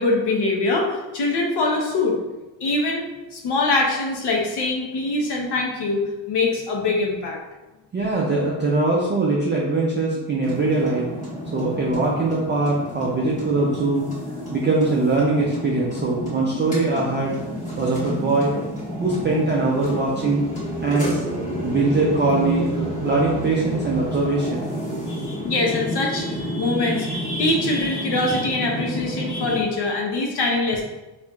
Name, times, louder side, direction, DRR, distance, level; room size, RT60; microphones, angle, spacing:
voice 1, 0.0-2.2 2.6-6.0 6.3-7.4 25.1-30.8, left 2 dB, 55° left, -1 dB, 0.7 m, -23 dB
voice 2, 7.9-11.0 11.5-14.1 14.5-17.3 17.8-18.5 19.0-20.4 20.8-21.2 21.6-24.7, right 3 dB, 25° right, -4 dB, 0.3 m, -22 dB
sound 1, 10.4-29.6, equal, 15° left, 1.4 m, -30 dB
4.4 x 2.5 x 2.2 m, 1.1 s
cardioid pair, 135°, 47 cm